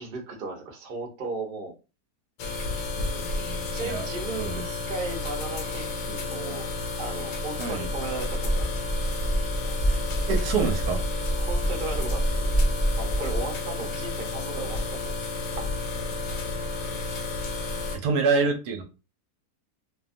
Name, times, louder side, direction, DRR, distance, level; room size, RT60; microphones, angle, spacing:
voice 1, 0.0-1.7 3.7-6.7 7.0-8.7 8.9-9.0 11.4-12.5 13.0-15.2, right 3 dB, 55° right, 1 dB, 0.6 m, -36 dB
sound 1, 2.4-18.0, left 3 dB, 90° left, 1.3 m, -32 dB
voice 2, 3.0-4.0 4.4-4.7 7.6-7.9 10.3-11.0 15.6-15.7 17.9-18.8, right 4 dB, 70° right, 4 dB, 1.0 m, -27 dB
sound 2, 7.8-13.4, right 1 dB, 60° left, 0.4 m, -27 dB
2.7 x 2.2 x 2.5 m, 0.30 s
omnidirectional pair, 1.8 m